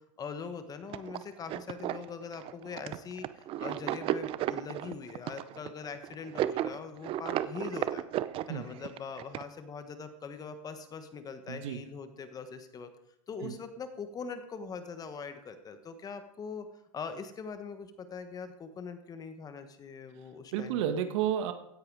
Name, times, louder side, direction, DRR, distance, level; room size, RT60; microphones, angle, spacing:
voice 1, 0.0-8.0 8.5-12.9 13.3-16.7 16.9-20.8, left 5 dB, 20° left, 9 dB, 1.4 m, -42 dB
sound 1, 0.9-9.4, right 12 dB, 30° right, 0.6 m, -34 dB
voice 2, 11.5-11.8 13.4-13.5 20.5-21.5, right 9 dB, 60° right, 9 dB, 1.7 m, -31 dB
16.5 x 9.8 x 4.8 m, 0.82 s
hypercardioid pair, 125°, 17 cm